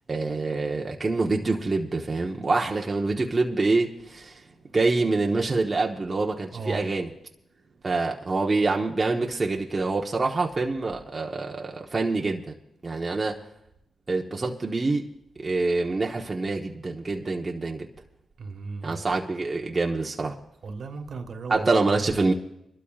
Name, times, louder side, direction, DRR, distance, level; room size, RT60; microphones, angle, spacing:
voice 1, 0.1-4.4 4.7-7.1 7.8-12.4 12.8-13.4 14.1-15.0 15.4-17.9 18.8-20.4 21.5-22.3, right 3 dB, 35° right, 1.2 m, -26 dB
voice 2, 6.5-6.8 18.4-19.0 20.6-21.7, right 4 dB, 65° right, 1.6 m, -35 dB
26.5 x 12.5 x 2.5 m
cardioid pair, 60°, 0 cm